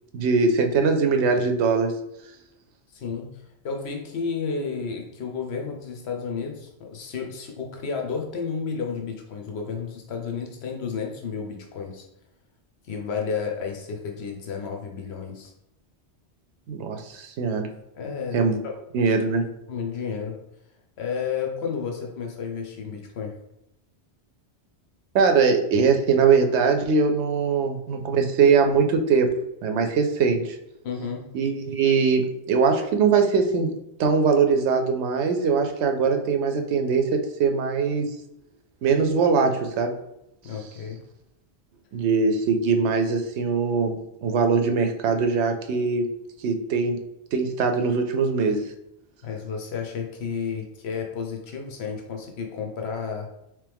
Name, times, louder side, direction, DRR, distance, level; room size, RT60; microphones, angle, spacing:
voice 1, 0.1-1.9 16.7-17.7 18.3-18.6 18.9-19.5 25.1-29.3 29.6-30.6 31.3-33.7 34.0-38.1 38.8-39.9 41.9-46.1 46.4-47.0 47.3-48.6, right 5 dB, 85° right, 5 dB, 0.9 m, -21 dB
voice 2, 2.9-12.0 12.9-15.5 18.0-18.4 18.6-18.7 19.7-20.4 21.0-23.3 30.8-31.2 40.4-41.0 49.2-53.3, left 5 dB, 75° left, 2 dB, 0.9 m, -32 dB
3.3 x 3.1 x 3.4 m, 0.83 s
omnidirectional pair, 1.1 m